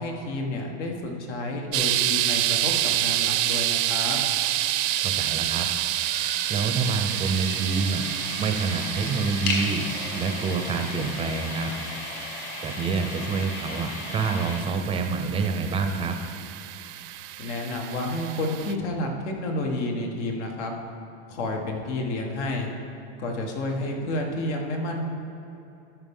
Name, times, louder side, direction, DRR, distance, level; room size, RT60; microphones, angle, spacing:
voice 1, 0.0-4.2 17.4-20.7 21.3-22.7 23.2-25.0, left 1 dB, 85° left, 2 dB, 1.5 m, -30 dB
sound 1, 1.7-18.7, right 14 dB, 85° right, 0.6 m, -29 dB
sound 2, 3.9-14.6, left 2 dB, 60° left, 1.9 m, -36 dB
voice 2, 5.0-5.7 6.5-8.0 8.4-9.8 10.2-11.7 12.6-16.1, right 5 dB, 15° right, 6 dB, 0.5 m, -27 dB
13.0 x 5.8 x 3.7 m, 2.9 s
supercardioid pair, 155°, 34 cm